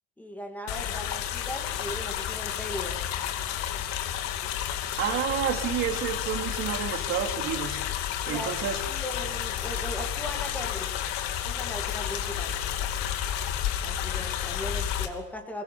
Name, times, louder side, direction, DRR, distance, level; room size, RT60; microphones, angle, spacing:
voice 1, 0.2-3.0 8.3-8.5 8.8-10.9 11.4-12.6 13.8-15.6, equal, 5° left, 3 dB, 2.4 m, -38 dB
sound 1, 0.7-15.1, left 10 dB, 60° left, 2.8 m, -31 dB
voice 2, 5.0-7.8 8.3-8.8, right 9 dB, 40° right, 5 dB, 2.7 m, -29 dB
23.0 x 21.5 x 7.4 m, 1.0 s
cardioid pair, 165°, 31 cm